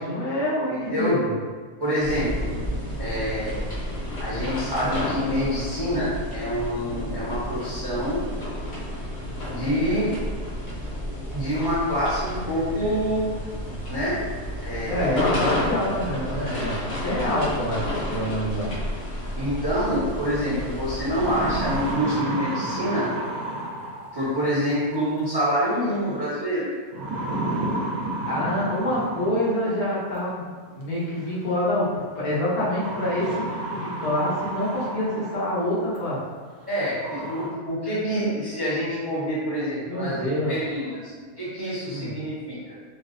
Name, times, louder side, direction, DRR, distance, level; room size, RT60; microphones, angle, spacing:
voice 1, 0.0-1.3 14.8-18.7 28.3-36.2 39.9-40.5 41.9-42.1, left 1 dB, 80° left, -8 dB, 1.6 m, -26 dB
voice 2, 0.7-1.2 1.8-2.5 3.0-3.6 4.2-8.2 9.5-10.1 11.3-13.3 13.9-14.2 14.6-15.2 19.4-23.1 24.1-26.7 36.7-41.1 41.4-42.7, equal, 20° right, -11 dB, 0.7 m, -26 dB
sound 1, 2.0-21.9, left 1 dB, 55° left, 1.4 m, -31 dB
sound 2, 11.5-11.6 12.0-19.6 20.0-20.1 22.6-25.2, right 2 dB, 60° right, 1.2 m, -46 dB
sound 3, 20.3-20.4 20.9-24.3 25.7-26.1 26.9-29.7 31.0-31.1 32.6-35.5 36.0-36.1 36.6-36.7 37.0-37.5, right 1 dB, 80° right, 1.1 m, -31 dB
4.5 x 2.0 x 2.5 m, 1.5 s
omnidirectional pair, 1.5 m